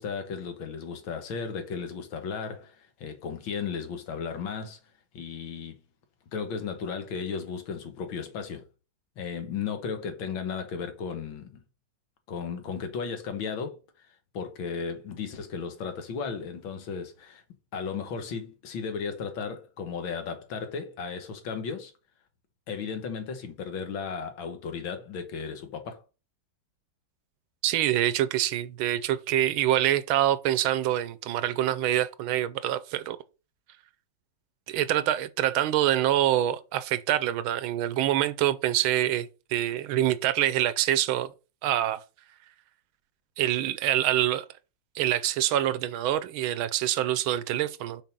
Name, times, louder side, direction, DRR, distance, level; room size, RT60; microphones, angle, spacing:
voice 1, 0.0-4.8 5.1-5.8 6.3-8.6 9.2-11.6 12.3-13.8 14.3-17.4 17.7-21.9 22.7-26.0, left 6 dB, 70° left, 1.9 m, -35 dB
voice 2, 27.6-33.2 34.7-41.3 41.6-42.0 43.4-44.4 44.9-48.0, right 12 dB, 80° right, 1.4 m, -25 dB
6.0 x 4.5 x 5.3 m
omnidirectional pair, 2.3 m